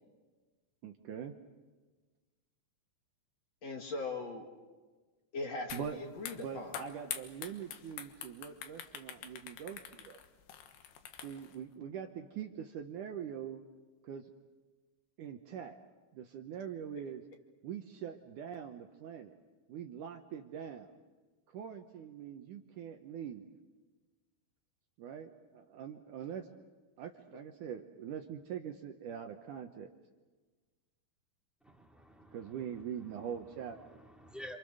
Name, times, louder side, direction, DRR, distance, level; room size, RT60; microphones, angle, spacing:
voice 1, 0.8-1.4 5.7-6.0 6.4-10.2 11.2-13.6 14.0-14.3 15.2-15.8 16.1-17.2 17.6-19.4 19.7-20.9 21.5-23.5 25.0-26.5 27.0-29.9 32.3-34.0, right 8 dB, 70° right, 5 dB, 2.1 m, -43 dB
voice 2, 3.6-4.5 5.3-6.8, left 3 dB, 50° left, 2 dB, 2.9 m, -40 dB
sound 1, 5.7-5.9 6.2-11.6, left 9 dB, 90° left, 3.4 m, -45 dB
voice 3, 31.6-34.6, equal, ahead, 2 dB, 1.8 m, -52 dB
28.0 x 27.5 x 6.7 m, 1.3 s
omnidirectional pair, 4.5 m